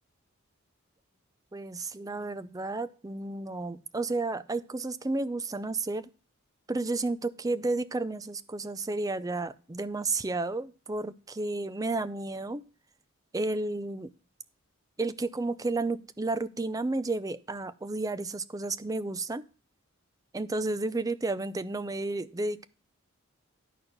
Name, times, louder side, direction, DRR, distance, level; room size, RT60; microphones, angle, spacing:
voice 1, 1.5-6.1 6.7-12.6 13.3-14.1 15.0-19.5 20.3-22.7, right 2 dB, 15° right, 13 dB, 0.5 m, -32 dB
11.0 x 4.5 x 6.5 m, 0.36 s
head